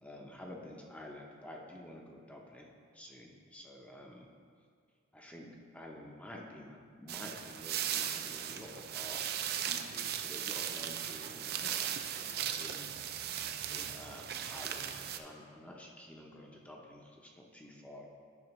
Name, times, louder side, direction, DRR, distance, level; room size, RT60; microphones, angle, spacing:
voice 1, 0.0-4.3 5.1-5.5 5.7-9.2 9.6-12.9 13.7-18.1, left 1 dB, 5° left, -1 dB, 0.6 m, -50 dB
sound 1, 7.1-15.2, right 9 dB, 50° right, 0.4 m, -37 dB
10.5 x 5.7 x 3.0 m, 2.1 s
head